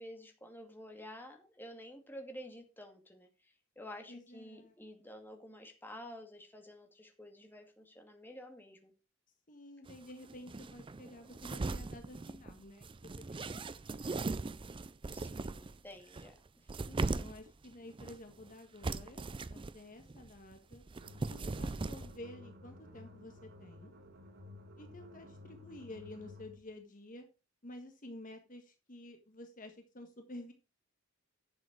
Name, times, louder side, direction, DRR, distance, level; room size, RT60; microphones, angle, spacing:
voice 1, 0.0-8.9 15.1-16.7, equal, 10° left, 4 dB, 2.2 m, -50 dB
voice 2, 4.1-4.7 9.5-12.9 13.2-14.1 16.9-20.8 21.3-23.9 24.8-27.3 27.6-30.5, left 1 dB, 40° left, 5 dB, 1.6 m, -51 dB
sound 1, 9.9-10.0 10.3-15.8 16.1-17.5 17.9-18.5 18.8-19.7 20.0-22.2, right 3 dB, 25° right, 0.4 m, -39 dB
sound 2, 21.0-26.6, left 2 dB, 55° right, 1.8 m, -53 dB
10.5 x 7.1 x 4.8 m, 0.30 s
head